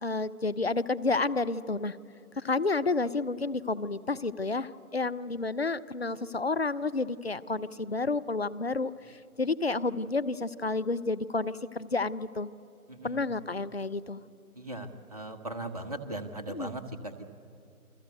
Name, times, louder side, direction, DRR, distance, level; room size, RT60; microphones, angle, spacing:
voice 1, 0.0-2.0 2.4-12.5 13.0-14.2 16.5-16.7, left 3 dB, 45° left, 15 dB, 0.7 m, -30 dB
voice 2, 12.9-13.2 14.6-17.3, right 1 dB, 25° right, 5 dB, 1.2 m, -39 dB
28.5 x 22.0 x 8.0 m, 2.5 s
figure-of-eight pair, 160°, 44 cm